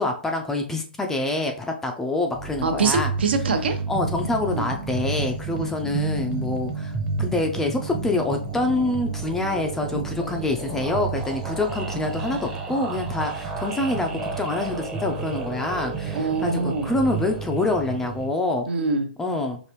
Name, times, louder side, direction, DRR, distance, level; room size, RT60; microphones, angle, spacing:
voice 1, 0.0-3.1 3.9-6.9 7.2-18.7 19.2-19.6, left 2 dB, 5° left, 3 dB, 0.4 m, -26 dB
sound 1, 2.3-18.3, right 4 dB, 20° right, 0.7 m, -31 dB
voice 2, 2.6-3.8 4.5-4.7 16.1-16.9 18.7-19.1, right 4 dB, 75° right, 6 dB, 0.9 m, -24 dB
4.8 x 2.6 x 3.0 m, 0.43 s
hypercardioid pair, 145°, 6 cm